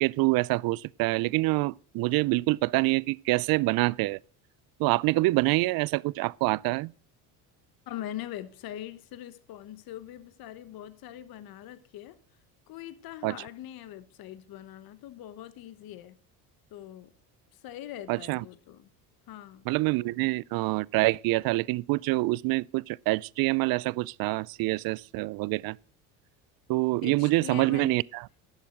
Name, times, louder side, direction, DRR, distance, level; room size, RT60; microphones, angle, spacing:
voice 1, 0.0-4.2 4.8-6.9 13.2-13.4 18.1-18.4 19.7-25.8 26.7-28.2, right 22 dB, 60° right, 0.5 m, -26 dB
voice 2, 7.9-12.2 12.7-16.2 16.7-17.1 17.5-18.9 19.3-19.6 27.0-28.0, left 12 dB, 60° left, 1.2 m, -42 dB
11.5 x 7.4 x 6.3 m
supercardioid pair, 80°, 40 cm